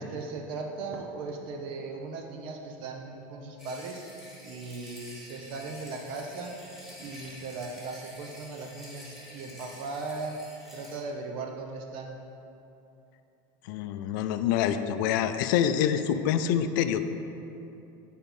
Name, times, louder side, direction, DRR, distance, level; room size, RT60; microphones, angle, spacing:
voice 1, 0.0-4.1 4.4-6.5 7.0-10.4 10.7-12.2, right 3 dB, 55° right, 2 dB, 0.8 m, -38 dB
sound 1, 3.6-11.0, left 1 dB, ahead, 1.4 m, -48 dB
voice 2, 13.6-17.0, left 9 dB, 75° left, 10 dB, 0.4 m, -26 dB
8.0 x 4.3 x 5.4 m, 2.8 s
supercardioid pair, 155°, 11 cm